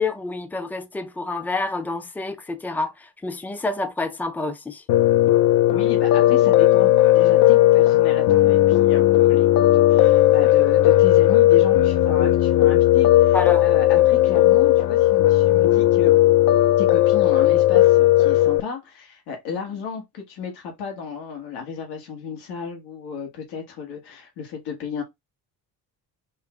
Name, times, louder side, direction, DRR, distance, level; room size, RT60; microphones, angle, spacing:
voice 1, 0.0-4.8 13.3-13.6, left 3 dB, 5° left, 0.6 m, -28 dB
Piano, 4.9-18.6, left 14 dB, 55° left, 0.6 m, -16 dB
voice 2, 5.7-16.1 16.8-25.0, left 6 dB, 80° left, 1.5 m, -33 dB
5.4 x 2.1 x 3.6 m
cardioid pair, 85°, 39 cm